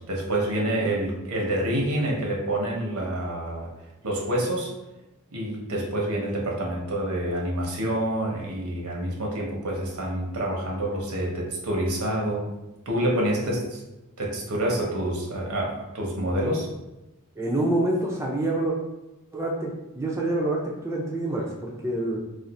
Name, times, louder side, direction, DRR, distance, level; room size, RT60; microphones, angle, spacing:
voice 1, 0.0-3.7 4.0-4.7 5.3-12.5 12.9-13.8 14.2-16.7, right 1 dB, 75° right, -2 dB, 0.9 m, -27 dB
voice 2, 17.4-18.8 19.3-22.2, right 1 dB, 10° right, -2 dB, 0.4 m, -27 dB
2.5 x 2.4 x 4.1 m, 1.0 s
head